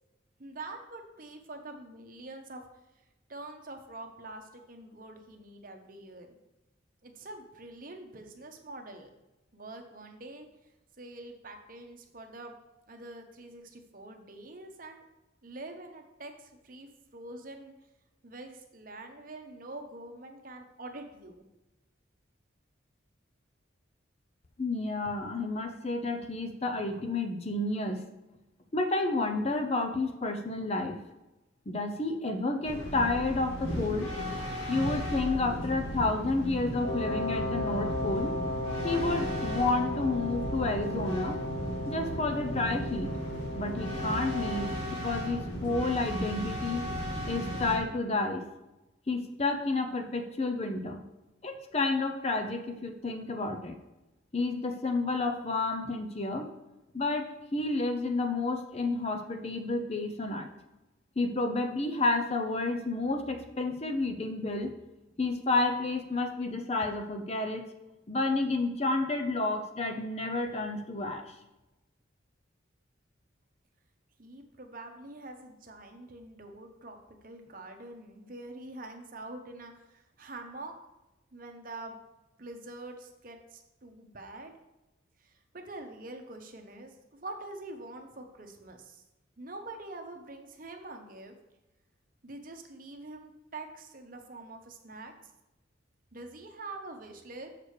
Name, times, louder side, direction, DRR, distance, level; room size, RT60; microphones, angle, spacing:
voice 1, 0.4-2.6 3.3-6.3 7.0-9.1 9.5-10.5 11.0-12.5 12.9-15.1 15.4-17.7 18.2-21.4 74.2-80.7 81.3-82.0 82.4-84.5 85.2-89.0 89.4-91.3 92.2-95.1 96.1-97.5, right 2 dB, 45° right, 4 dB, 0.9 m, -45 dB
voice 2, 24.6-28.0 28.7-31.0 31.7-34.1 34.7-38.3 38.8-41.4 41.9-43.1 43.5-44.7 45.0-46.9 47.3-48.4 49.1-51.0 51.4-53.8 54.3-56.5 56.9-60.5 61.2-64.7 65.2-67.6 68.1-71.3, left 2 dB, 30° left, 6 dB, 0.6 m, -30 dB
sound 1, 32.6-47.8, equal, 90° left, 2.9 m, -36 dB
Wind instrument woodwind instrument, 36.8-44.9, left 1 dB, 50° left, 1.3 m, -36 dB
6.7 x 4.9 x 6.5 m, 0.99 s
head